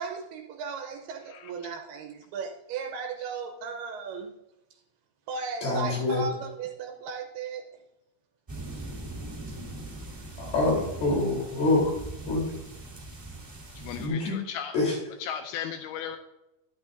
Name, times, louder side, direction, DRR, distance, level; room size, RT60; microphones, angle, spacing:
voice 1, 0.0-4.3 5.3-7.7, right 5 dB, 75° right, 5 dB, 2.5 m, -36 dB
voice 2, 5.6-6.2 10.4-11.9 12.3-12.4 14.0-14.4 14.7-14.9, left 2 dB, 60° left, -3 dB, 5.3 m, -25 dB
sound 1, 8.5-14.1, right 2 dB, 10° right, 1.6 m, -40 dB
voice 3, 13.8-14.7 15.2-16.2, left 8 dB, 90° left, 7 dB, 2.2 m, -36 dB
11.5 x 10.5 x 2.6 m, 0.90 s
omnidirectional pair, 5.0 m